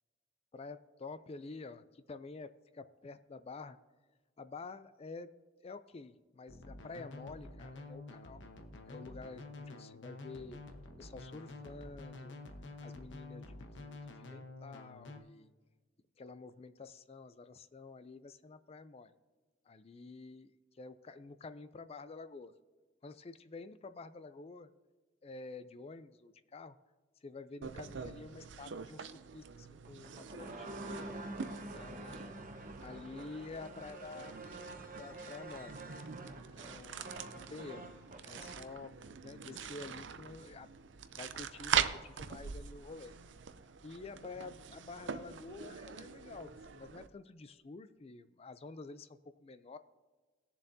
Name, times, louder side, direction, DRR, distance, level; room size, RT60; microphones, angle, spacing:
voice 1, 0.5-3.8 4.4-5.4 5.6-8.5 8.9-10.6 11.0-12.4 12.8-15.5 16.2-19.1 19.7-22.5 23.0-24.7 25.2-26.8 27.2-30.7 31.7-32.3 32.8-34.4 34.9-35.8 36.5-37.9 38.2-38.9 39.2-40.7 41.2-43.1 43.8-49.8, left 3 dB, 35° left, 12 dB, 0.4 m, -49 dB
sound 1, 6.5-15.2, left 2 dB, 85° left, 1.1 m, -49 dB
sound 2, 27.6-47.1, right 7 dB, 80° right, 0.6 m, -43 dB
sound 3, 29.8-38.7, right 2 dB, 45° right, 1.1 m, -47 dB
20.0 x 7.1 x 2.7 m, 1.3 s
head